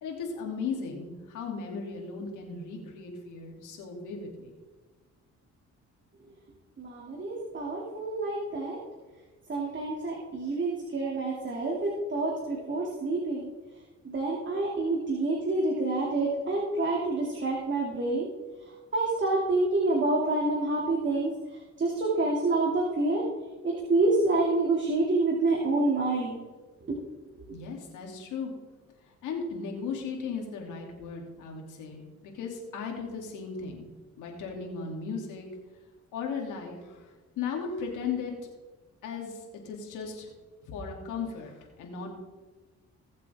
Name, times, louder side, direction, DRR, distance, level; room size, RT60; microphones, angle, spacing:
voice 1, 0.0-4.5 27.4-28.5 29.2-33.9 34.2-35.5 36.1-38.3 39.0-40.3 40.7-42.1, left 5 dB, 90° left, 0 dB, 3.0 m, -36 dB
voice 2, 6.8-8.8 9.5-13.5 14.0-18.3 18.9-21.3 21.8-23.2 23.6-26.4 26.9-27.0, right 2 dB, 40° right, -2 dB, 2.6 m, -27 dB
19.5 x 7.6 x 3.6 m, 1.3 s
cardioid pair, 90°, 30 cm